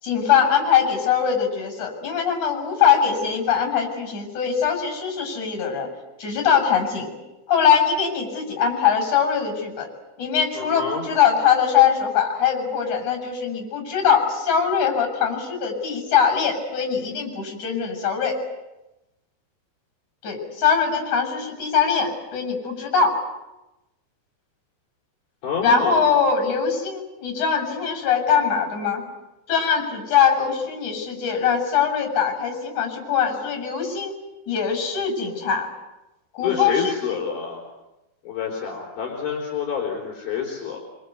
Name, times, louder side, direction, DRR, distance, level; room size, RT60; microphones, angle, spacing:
voice 1, 0.0-5.9 6.2-7.1 7.5-9.9 10.2-18.4 20.2-23.2 25.6-29.0 29.5-34.1 34.5-35.7 36.3-37.2, left 7 dB, 50° left, 4 dB, 8.6 m, -22 dB
voice 2, 10.6-11.1 25.4-26.2 36.4-37.6 38.2-40.8, left 6 dB, 75° left, -2 dB, 6.0 m, -28 dB
27.5 x 25.5 x 8.3 m, 0.99 s
omnidirectional pair, 4.3 m